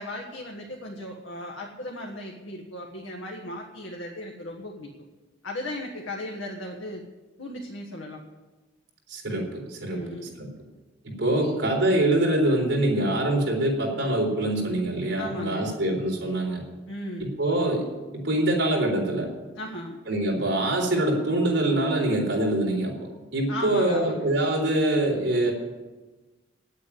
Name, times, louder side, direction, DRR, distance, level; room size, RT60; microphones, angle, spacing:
voice 1, 0.0-4.9 5.4-7.0 7.4-8.2 9.9-10.3 11.4-11.5 15.2-15.7 16.9-17.3 19.5-20.0 23.5-24.3, left 1 dB, 90° left, 0 dB, 1.5 m, -36 dB
voice 2, 9.1-10.0 10.4-10.5 11.0-16.6 17.2-17.8 18.1-19.3 20.1-22.9 23.3-25.5, right 1 dB, 65° right, -1 dB, 3.9 m, -24 dB
9.9 x 8.4 x 9.7 m, 1.2 s
head